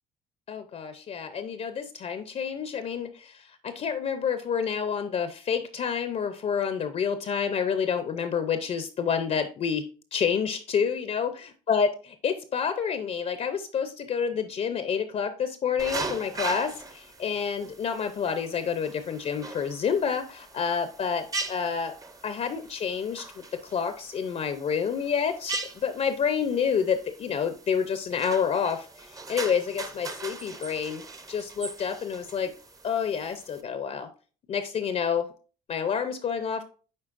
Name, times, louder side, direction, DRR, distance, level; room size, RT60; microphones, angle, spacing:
voice 1, 0.5-9.9 10.1-21.9 22.2-23.4 23.7-31.0 31.3-32.5 32.8-34.1 34.5-35.3 35.7-36.6, left 7 dB, 40° left, 9 dB, 0.6 m, -28 dB
sound 1, 15.8-33.6, right 3 dB, 20° right, 0.7 m, -40 dB
9.7 x 4.0 x 2.5 m, 0.39 s
cardioid pair, 110°, 17 cm